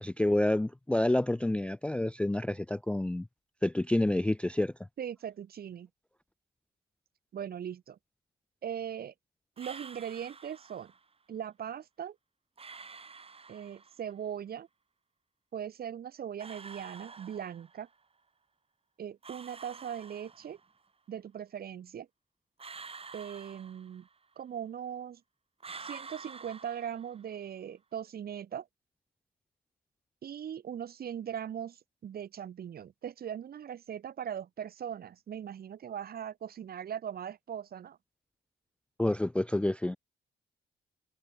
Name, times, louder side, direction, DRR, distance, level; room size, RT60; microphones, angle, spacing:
voice 1, 0.0-3.3 3.6-4.7 39.0-40.0, left 1 dB, 5° left, 0.3 m, -28 dB
voice 2, 5.0-5.9 7.3-8.0 8.6-9.1 9.6-10.9 11.3-12.2 13.5-14.7 15.5-17.9 19.0-20.6 21.1-22.1 23.1-24.1 24.4-25.2 25.8-28.7 30.2-38.0, right 9 dB, 50° right, 0.9 m, -40 dB
sound 1, 9.6-11.0 12.6-14.1 16.4-17.9 19.2-20.8 22.6-24.3 25.6-27.4, right 4 dB, 30° right, 1.7 m, -48 dB
cardioid pair, 90°, 20 cm